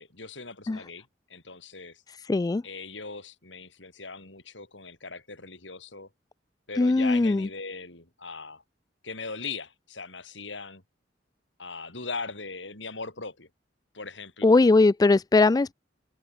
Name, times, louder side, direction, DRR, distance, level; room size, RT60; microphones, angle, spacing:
voice 1, 0.0-2.0 2.6-6.1 6.7-8.6 9.0-10.8 11.6-13.5 13.9-14.4, left 4 dB, 85° left, 7.9 m, -39 dB
voice 2, 2.3-2.6 6.8-7.5 14.4-15.7, left 3 dB, 20° left, 0.3 m, -20 dB
head